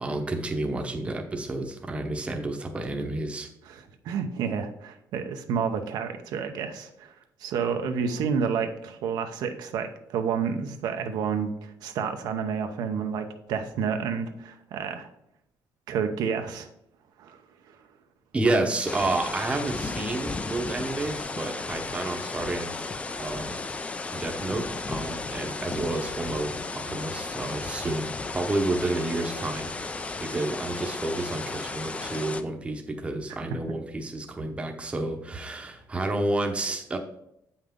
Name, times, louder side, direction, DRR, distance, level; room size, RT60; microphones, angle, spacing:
voice 1, 0.0-3.5 18.3-23.6 23.9-37.0, right 2 dB, 15° right, 4 dB, 0.8 m, -30 dB
voice 2, 3.6-7.1 7.4-15.1 15.9-16.7 17.2-17.4 17.7-17.8 33.5-33.6, right 6 dB, 80° right, 5 dB, 0.8 m, -30 dB
sound 1, 18.9-32.4, left 3 dB, 20° left, 0.4 m, -34 dB
7.8 x 5.7 x 3.7 m, 0.80 s
cardioid pair, 135°, 7 cm